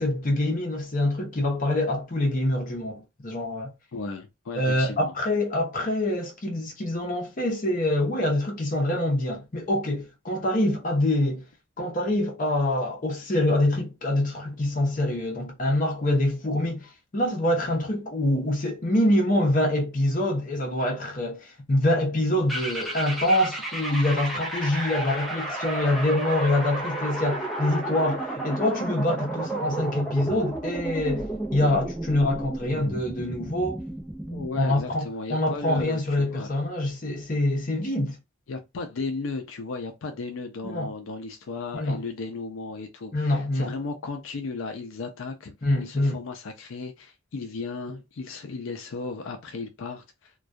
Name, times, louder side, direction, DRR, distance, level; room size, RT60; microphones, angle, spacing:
voice 1, 0.0-3.7 4.6-11.4 11.8-33.8 34.5-38.2 40.6-40.9 41.7-42.0 43.1-43.7 45.6-46.2, left 1 dB, 40° left, 0.7 m, -25 dB
voice 2, 3.9-5.1 34.3-36.5 38.5-45.5 45.8-50.4, left 4 dB, 80° left, 0.4 m, -35 dB
sound 1, 22.5-34.6, right 2 dB, ahead, 0.5 m, -32 dB
2.2 x 2.2 x 2.5 m
head